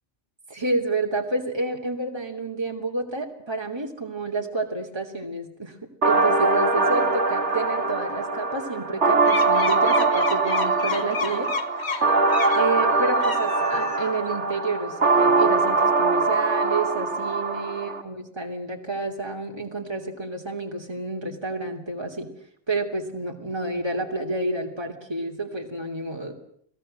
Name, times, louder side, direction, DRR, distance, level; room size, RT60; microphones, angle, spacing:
voice 1, 0.5-5.8 6.0-11.5 12.5-22.3 22.7-26.3, right 3 dB, 25° right, 1 dB, 3.1 m, -29 dB
sound 1, 6.0-18.0, right 3 dB, 90° right, 2.3 m, -22 dB
sound 2, 9.2-12.7 13.1-14.3, left 5 dB, 70° left, 1.6 m, -31 dB
29.5 x 19.0 x 7.8 m, 0.68 s
omnidirectional pair, 1.1 m